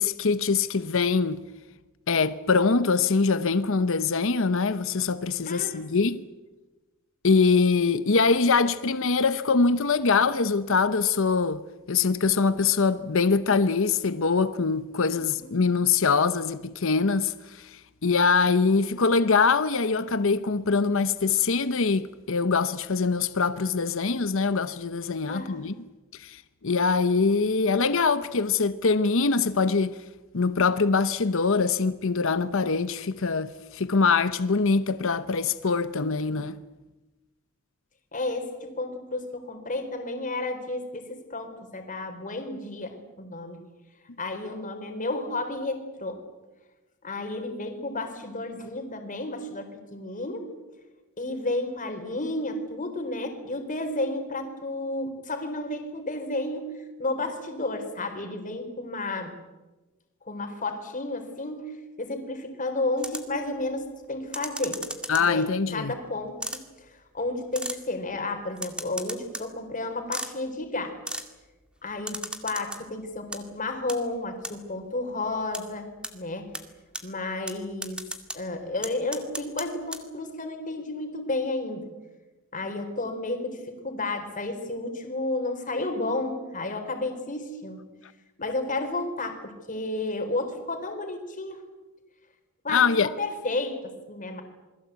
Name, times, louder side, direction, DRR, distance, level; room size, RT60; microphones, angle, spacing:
voice 1, 0.0-1.4 2.1-6.2 7.2-11.6 11.9-25.7 26.1-30.0 30.3-36.6 65.1-65.9 92.7-93.1, left 4 dB, 65° left, 0.9 m, -23 dB
voice 2, 5.5-6.1 15.1-15.5 25.3-25.7 38.1-43.6 44.2-46.2 47.0-50.5 51.2-59.3 60.2-64.8 65.2-71.0 71.8-75.9 76.1-76.5 77.0-78.0 78.3-81.8 82.5-87.8 88.4-91.6 92.6-94.4, left 2 dB, 40° left, 4.1 m, -32 dB
sound 1, 63.0-63.4 64.3-65.4 66.4-66.6 67.5-67.8 68.6-69.5 70.1-70.3 71.1-71.3 72.1-72.8 73.1-73.4 73.9-74.0 74.4-74.5 75.5-75.6 76.0-76.1 76.5-76.6 76.9-77.0 77.5-77.6 77.8-78.4 78.8-79.6 79.9-80.0, right 1 dB, 5° right, 2.1 m, -34 dB
28.0 x 21.0 x 8.3 m
head